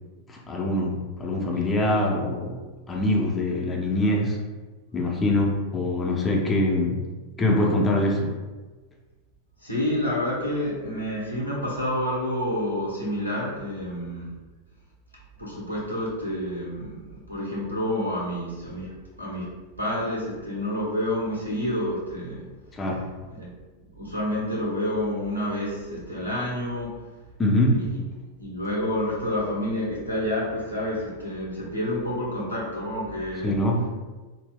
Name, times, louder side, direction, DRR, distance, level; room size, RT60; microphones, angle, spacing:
voice 1, 0.3-2.6 2.9-4.4 4.9-7.0 7.4-8.3 22.7-23.1 27.4-27.9 33.4-33.9, left 1 dB, 15° left, -1 dB, 0.5 m, -24 dB
voice 2, 9.6-14.3 15.4-19.5 19.8-22.4 23.3-23.5 23.9-26.9 27.6-27.8 28.4-33.5, left 1 dB, 85° right, -5 dB, 0.9 m, -29 dB
3.9 x 2.0 x 2.2 m, 1.2 s
figure-of-eight pair, 90°, 0 cm